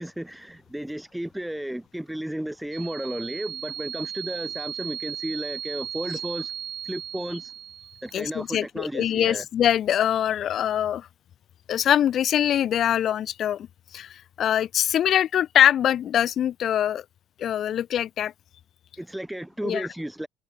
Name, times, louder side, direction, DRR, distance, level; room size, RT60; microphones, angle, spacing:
voice 1, 0.0-6.5 6.8-7.5 8.0-9.4 19.0-20.3, right 1 dB, ahead, 1.5 m, -33 dB
sound 1, 2.7-8.4, right 10 dB, 35° right, 4.3 m, -36 dB
voice 2, 8.1-11.1 11.7-13.7 13.9-17.0 17.4-18.3 19.6-19.9, left 10 dB, 35° left, 0.9 m, -23 dB
cardioid pair, 180°, 0 cm